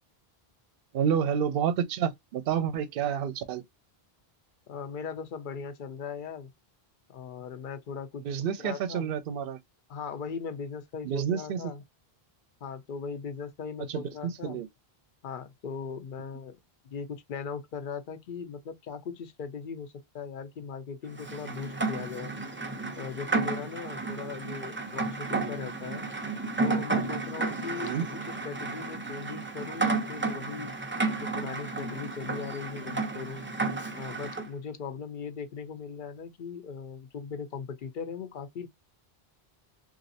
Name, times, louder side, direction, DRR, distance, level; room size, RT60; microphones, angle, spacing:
voice 1, 0.9-3.6 8.2-9.6 11.0-11.7 13.9-14.7 27.8-28.0, right 8 dB, 65° right, 0.7 m, -29 dB
voice 2, 4.7-6.5 7.1-8.2 8.6-9.1 9.9-11.8 12.6-14.6 15.2-22.3 22.9-26.1 26.6-30.7 31.2-33.4 33.9-38.7, left 6 dB, 60° left, 0.7 m, -39 dB
Rain, 21.2-34.5, right 3 dB, 20° right, 0.4 m, -32 dB
3.0 x 2.6 x 2.7 m
omnidirectional pair, 1.0 m